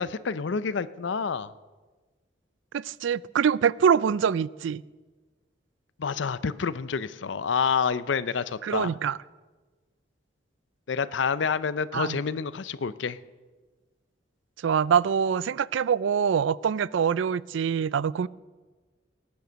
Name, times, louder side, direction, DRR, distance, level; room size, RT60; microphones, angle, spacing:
voice 1, 0.0-1.5 6.0-8.9 10.9-13.2, left 5 dB, 75° left, 0.5 m, -28 dB
voice 2, 2.7-4.8 8.6-9.2 11.9-12.2 14.6-18.3, right 7 dB, 80° right, 0.3 m, -24 dB
18.0 x 9.4 x 6.2 m
head